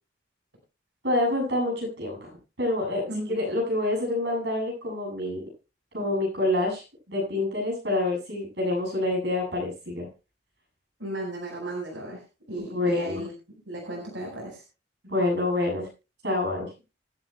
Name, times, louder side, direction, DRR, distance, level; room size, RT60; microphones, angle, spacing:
voice 1, 1.0-2.3 2.6-3.0 3.3-5.4 5.9-10.1 12.6-13.2 15.0-15.9 16.2-16.7, left 2 dB, 70° right, 0 dB, 7.4 m, -27 dB
voice 2, 11.0-12.2 12.5-13.3 13.7-14.6, right 1 dB, 90° right, -1 dB, 5.1 m, -34 dB
26.0 x 8.7 x 2.2 m, 0.30 s
head